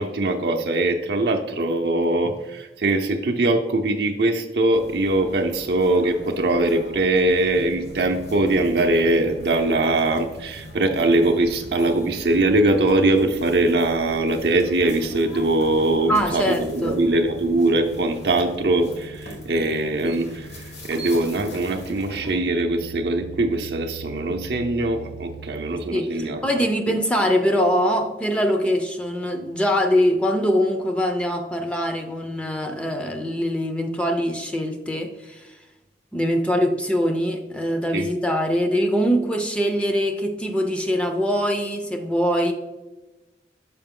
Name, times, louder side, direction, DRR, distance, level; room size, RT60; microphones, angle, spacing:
voice 1, 0.0-26.6 37.9-38.1, right 2 dB, 65° right, 3 dB, 0.5 m, -22 dB
sound 1, 4.7-22.4, equal, 70° left, 1.7 m, -42 dB
sound 2, 7.5-25.7, right 2 dB, 55° left, 0.7 m, -43 dB
voice 2, 16.1-17.0 25.9-35.5 36.1-42.5, equal, 5° left, 4 dB, 0.5 m, -23 dB
6.7 x 5.1 x 3.6 m, 1.1 s
head